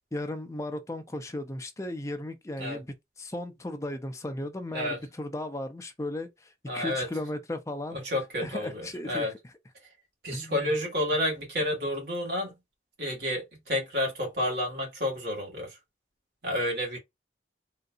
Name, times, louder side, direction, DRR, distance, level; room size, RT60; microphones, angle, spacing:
voice 1, 0.1-2.9 3.2-8.0 8.4-9.3 10.3-10.7, left 1 dB, 15° left, 0.5 m, -35 dB
voice 2, 6.7-7.1 7.9-9.3 10.2-12.5 13.0-15.8 16.4-17.0, left 1 dB, 65° right, 1.5 m, -30 dB
3.9 x 2.6 x 2.4 m
head